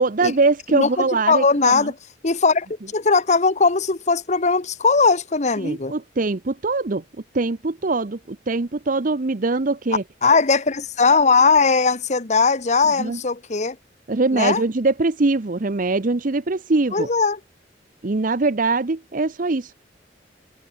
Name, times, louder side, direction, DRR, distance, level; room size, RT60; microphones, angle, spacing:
voice 1, 0.0-1.9 5.6-7.0 7.3-10.0 13.0-13.2 14.1-17.1 18.0-19.7, right 3 dB, 45° right, 0.8 m, -22 dB
voice 2, 1.3-1.9 2.2-2.7 2.9-5.9 10.2-13.7 14.3-14.6 16.9-17.4, left 4 dB, 40° left, 1.1 m, -19 dB
head